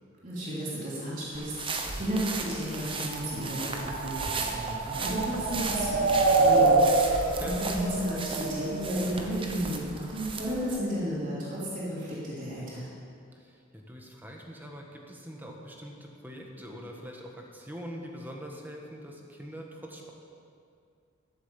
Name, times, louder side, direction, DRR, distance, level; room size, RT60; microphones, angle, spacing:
voice 1, 0.2-6.0 6.3-12.9, equal, 40° right, -9 dB, 3.4 m, -33 dB
sound 1, 1.3-10.8, right 3 dB, 25° right, 1.0 m, -36 dB
sound 2, 3.3-9.1, right 3 dB, 85° right, 1.3 m, -26 dB
voice 2, 13.3-20.1, equal, 10° right, 0 dB, 1.4 m, -43 dB
13.0 x 7.4 x 7.4 m, 2.4 s
head